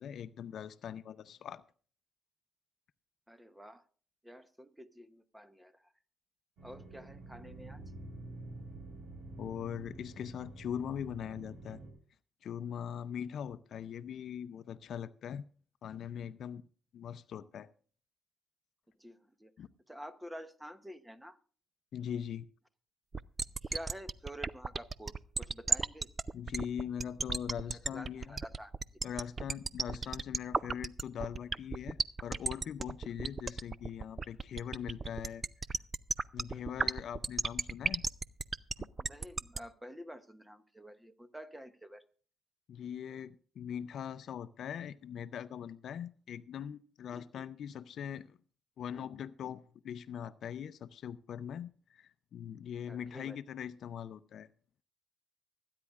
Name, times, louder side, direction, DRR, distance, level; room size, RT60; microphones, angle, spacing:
voice 1, 0.0-1.6 9.4-11.8 12.4-15.4 15.8-16.6 16.9-17.7 19.6-19.7 21.9-22.5 26.3-28.4 29.0-35.4 36.3-38.0 38.8-38.9 42.7-48.4 48.8-54.5, left 8 dB, 65° left, 0.5 m, -41 dB
voice 2, 3.3-3.8 4.2-5.9 6.6-7.8 19.0-19.5 19.9-21.4 23.6-26.1 27.7-29.2 36.5-36.7 39.1-42.0 47.1-47.5 52.9-53.4, equal, 5° right, 0.9 m, -49 dB
sound 1, 6.6-11.9, right 2 dB, 75° right, 4.0 m, -48 dB
sound 2, 23.1-39.6, right 4 dB, 30° right, 0.4 m, -33 dB
24.5 x 9.7 x 2.4 m
cardioid pair, 90°, 0 cm